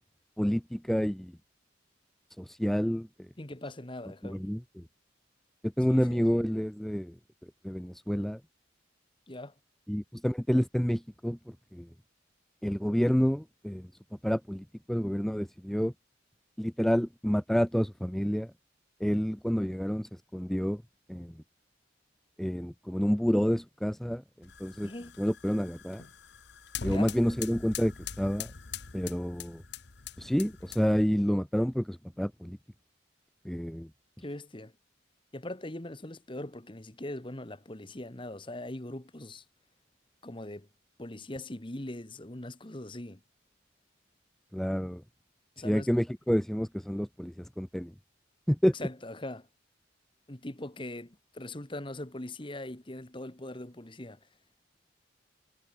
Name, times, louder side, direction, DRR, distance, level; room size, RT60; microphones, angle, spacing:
voice 1, 0.4-1.3 2.4-3.1 4.2-4.6 5.8-7.1 7.6-8.4 9.9-11.4 11.7-11.9 12.6-13.9 14.2-15.9 16.6-18.5 19.0-20.8 21.1-21.3 22.4-24.2 24.6-24.9 25.2-26.0 26.8-28.5 28.9-29.6 30.2-32.6 33.5-33.9 44.5-45.0 45.6-47.9 48.5-48.7, equal, ahead, 0.3 m, -29 dB
voice 2, 3.4-4.4 5.9-6.3 9.3-9.5 24.8-25.2 26.9-27.1 34.2-34.7 35.3-39.4 40.2-40.7 41.0-43.2 45.6-45.9 48.7-49.5 50.3-54.3, left 1 dB, 25° left, 1.3 m, -41 dB
sound 1, 24.4-31.1, left 7 dB, 55° left, 1.0 m, -43 dB
head